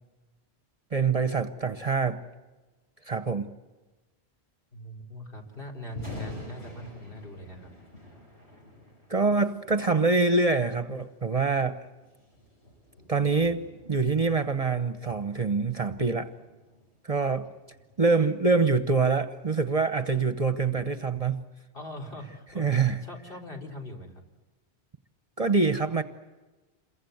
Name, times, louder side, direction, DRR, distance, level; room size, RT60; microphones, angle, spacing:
voice 1, 0.9-2.2 3.1-3.5 9.1-11.8 13.1-13.6 13.9-16.3 17.0-17.5 18.0-21.4 22.6-23.0 25.4-26.0, right 4 dB, 35° right, 10 dB, 1.0 m, -25 dB
voice 2, 4.7-7.7 21.7-24.2, left 1 dB, 55° left, 1 dB, 4.3 m, -41 dB
Thunder, 5.8-20.0, left 1 dB, 80° left, 7.1 m, -48 dB
28.0 x 23.0 x 8.0 m, 1.2 s
omnidirectional pair, 1.1 m